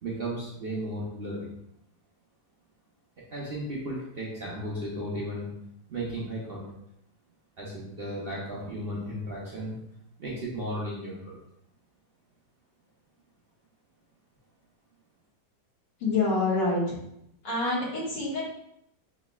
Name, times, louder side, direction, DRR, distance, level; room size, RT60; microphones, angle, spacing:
voice 1, 0.0-1.5 3.3-5.5 5.9-6.6 7.6-9.8 10.2-11.4, right 1 dB, 60° right, -5 dB, 0.6 m, -34 dB
voice 2, 16.0-17.0 17.4-18.4, left 3 dB, 75° left, -6 dB, 2.3 m, -26 dB
6.0 x 3.0 x 2.3 m, 0.78 s
omnidirectional pair, 1.9 m